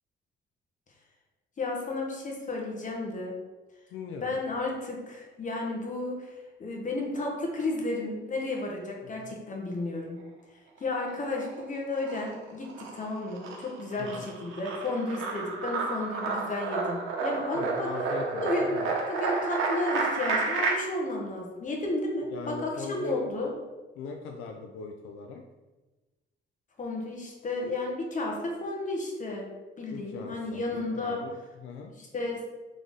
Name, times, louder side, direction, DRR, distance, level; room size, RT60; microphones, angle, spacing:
voice 1, 1.6-3.4 4.2-6.3 6.6-10.2 10.8-17.9 18.4-18.6 19.1-23.5 26.8-29.5 29.8-31.2 32.0-32.5, left 2 dB, 40° left, 0 dB, 1.2 m, -32 dB
voice 2, 3.9-4.4 9.2-9.3 14.0-14.3 17.5-19.0 22.3-23.2 24.0-25.4 29.9-30.6 30.9-31.9, left 4 dB, 85° left, 3 dB, 0.4 m, -39 dB
sound 1, 10.8-11.6 11.9-20.7, right 3 dB, 80° right, 0.8 m, -31 dB
3.7 x 3.4 x 3.9 m, 1.2 s
cardioid pair, 90°, 20 cm